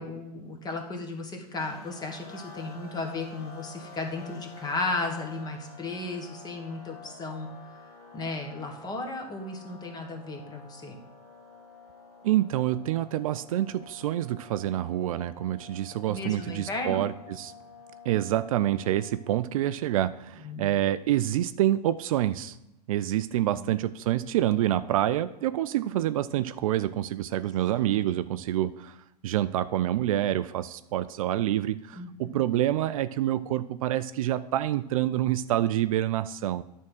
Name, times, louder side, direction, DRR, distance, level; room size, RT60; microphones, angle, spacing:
voice 1, 0.0-7.5 8.1-11.0 16.1-17.0 20.4-20.7 23.3-23.7 27.7-27.9 32.0-32.4, left 2 dB, 20° left, 3 dB, 1.5 m, -35 dB
sound 1, 1.6-19.4, left 5 dB, 45° left, 2.3 m, -49 dB
voice 2, 12.2-17.5 18.1-22.6 22.9-29.0 29.2-36.6, right 13 dB, 60° right, 13 dB, 0.4 m, -27 dB
10.5 x 3.7 x 6.0 m, 0.89 s
figure-of-eight pair, 95°, 21 cm